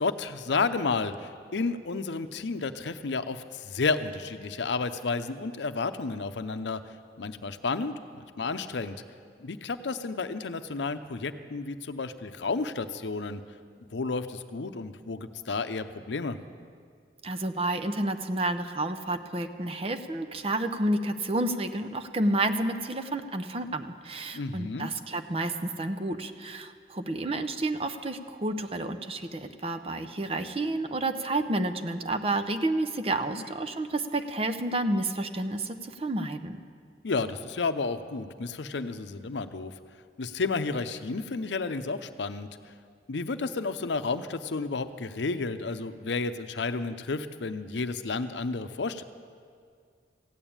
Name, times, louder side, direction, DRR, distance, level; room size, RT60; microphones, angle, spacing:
voice 1, 0.0-6.8 7.2-8.9 9.4-13.4 13.9-16.4 24.3-24.9 33.3-33.5 37.0-39.7 40.2-42.5 43.1-49.0, left 4 dB, 85° left, 10 dB, 0.6 m, -31 dB
voice 2, 17.2-36.6, right 2 dB, 35° right, 7 dB, 0.6 m, -30 dB
15.5 x 9.0 x 8.7 m, 2.1 s
head